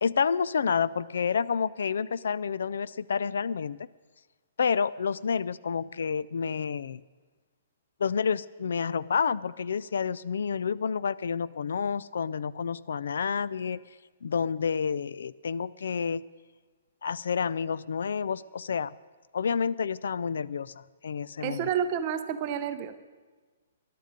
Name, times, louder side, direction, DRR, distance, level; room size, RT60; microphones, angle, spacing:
voice 1, 0.0-3.9 4.6-7.0 8.0-13.8 14.2-16.2 17.0-19.0 19.3-21.7, left 6 dB, 85° left, 19 dB, 0.4 m, -29 dB
voice 2, 21.4-22.9, right 8 dB, 25° right, 9 dB, 0.7 m, -30 dB
21.0 x 11.5 x 5.2 m, 1.4 s
hypercardioid pair, 180°, 0 cm